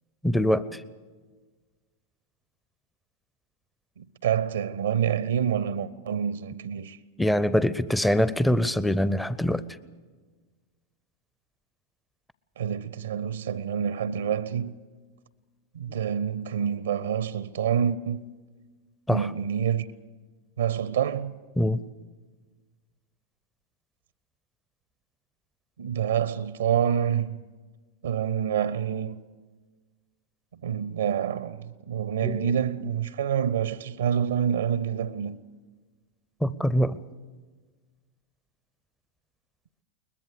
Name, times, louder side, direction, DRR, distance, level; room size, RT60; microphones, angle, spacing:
voice 1, 0.2-0.8 7.2-9.6 19.1-19.2 21.6-21.8 32.2-32.5 36.4-37.0, equal, 5° left, 0.5 m, -24 dB
voice 2, 4.0-7.0 12.6-14.8 15.7-18.3 19.1-19.9 20.6-21.4 25.8-27.4 28.0-29.2 30.6-35.4, right 8 dB, 65° right, 0.6 m, -27 dB
21.5 x 21.0 x 6.7 m
figure-of-eight pair, 90°, 0 cm